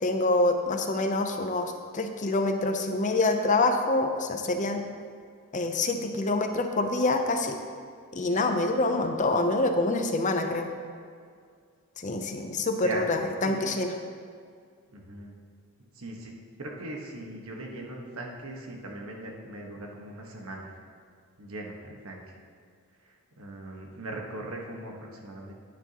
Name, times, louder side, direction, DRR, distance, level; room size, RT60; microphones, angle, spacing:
voice 1, 0.0-4.8 5.5-7.6 8.1-10.7 12.0-13.9, left 2 dB, 35° left, 5 dB, 0.6 m, -26 dB
voice 2, 14.9-15.4 15.9-20.8 21.4-22.4 23.0-25.5, right 1 dB, 65° right, 0 dB, 1.3 m, -39 dB
10.5 x 9.6 x 2.9 m, 2.2 s
head